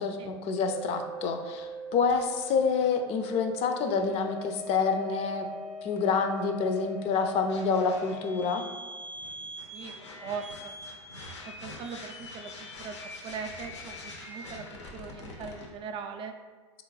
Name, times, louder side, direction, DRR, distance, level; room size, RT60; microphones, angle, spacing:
voice 1, 0.0-5.5 5.8-8.6, left 5 dB, 45° left, 6 dB, 0.4 m, -27 dB
sound 1, 0.6-15.7, equal, 90° left, 0.6 m, -42 dB
voice 2, 10.2-10.7 11.5-13.0 13.2-14.6 14.9-16.3, right 6 dB, 35° right, 6 dB, 0.3 m, -40 dB
3.6 x 2.5 x 3.1 m, 1.4 s
hypercardioid pair, 85°, 14 cm